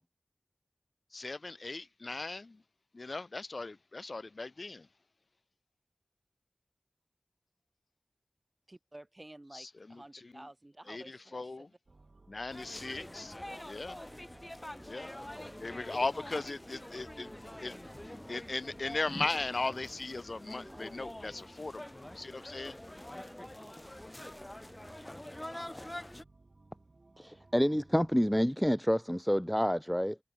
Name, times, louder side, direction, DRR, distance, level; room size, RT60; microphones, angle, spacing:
voice 1, 1.1-2.6 2.9-4.9 9.5-9.7 10.9-11.7 12.3-13.4 13.6-14.0 14.9-15.1 15.6-17.8 18.3-22.8, left 3 dB, 65° left, 0.6 m, -38 dB
voice 2, 8.7-11.8 20.6-21.6 22.3-22.4, right 1 dB, 30° right, 2.4 m, -53 dB
sound 1, 11.9-28.3, right 3 dB, 60° right, 5.2 m, -61 dB
sound 2, 12.5-26.2, left 1 dB, 20° left, 2.2 m, -45 dB
voice 3, 27.2-30.2, equal, 5° left, 0.6 m, -28 dB
wide cardioid pair, 65°, 0 cm